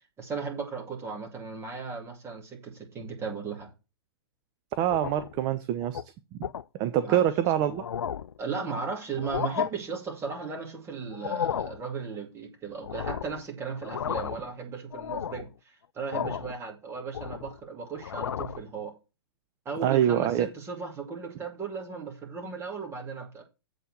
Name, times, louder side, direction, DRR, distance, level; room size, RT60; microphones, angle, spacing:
voice 1, 0.2-3.7 7.0-7.2 8.4-18.9 19.6-23.4, right 5 dB, 20° right, 2.4 m, -36 dB
sound 1, 4.8-5.4 5.8-6.0 6.4-6.6 7.3-7.4 7.7-8.4 9.1-9.7 11.1-11.8 12.8-13.4 13.8-14.5 14.9-15.5 16.1-16.6 16.9-17.6 18.0-18.6, left 8 dB, 80° left, 0.4 m, -33 dB
voice 2, 4.8-6.0 6.4-6.5 6.8-7.8 19.8-20.5, right 11 dB, 35° right, 0.7 m, -25 dB
7.9 x 4.5 x 6.5 m
figure-of-eight pair, 115°, 13 cm